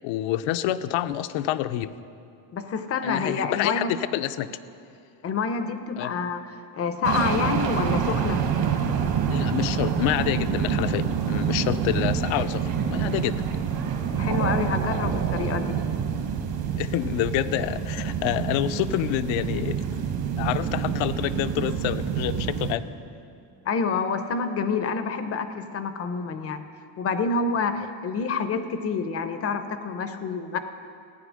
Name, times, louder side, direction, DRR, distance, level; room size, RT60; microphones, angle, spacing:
voice 1, 0.0-1.9 3.0-4.5 6.0-6.1 9.3-13.5 16.8-19.8 20.4-22.9, left 13 dB, 75° left, 13 dB, 0.6 m, -27 dB
voice 2, 2.5-3.9 5.2-8.4 14.2-15.7 23.6-26.7 27.0-30.6, left 5 dB, 30° left, 9 dB, 0.5 m, -28 dB
sound 1, 7.0-22.7, right 7 dB, 50° right, 1.3 m, -27 dB
15.0 x 9.2 x 6.2 m, 2.5 s
cardioid pair, 170°, 47 cm